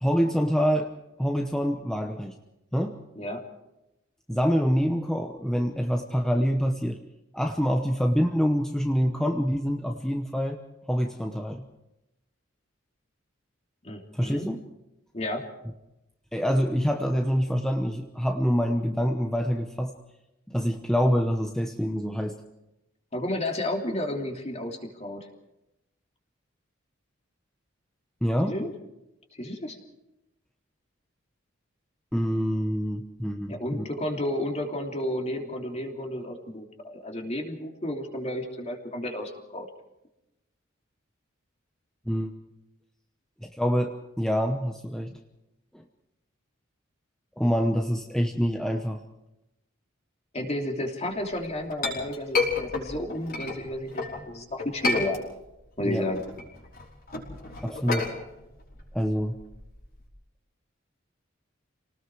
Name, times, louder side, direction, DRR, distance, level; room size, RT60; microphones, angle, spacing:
voice 1, 0.0-0.9 1.2-2.3 2.7-3.0 4.3-7.0 7.3-10.6 10.9-11.7 14.1-14.6 16.3-19.9 20.5-22.4 28.2-28.6 32.1-33.6 42.1-42.4 43.4-45.2 47.4-49.0 55.8-56.1 57.6-58.1 58.9-59.4, equal, 5° left, 3 dB, 0.9 m, -26 dB
voice 2, 13.8-14.5 15.1-15.5 23.1-25.3 28.5-28.7 29.3-29.8 33.5-39.7 50.3-55.2 55.8-56.2, left 1 dB, 35° left, 2 dB, 3.0 m, -32 dB
Chink clink, 51.3-54.2 54.6-55.6 56.0-60.1, left 3 dB, 50° left, 5.2 m, -31 dB
28.5 x 19.0 x 4.8 m, 0.92 s
head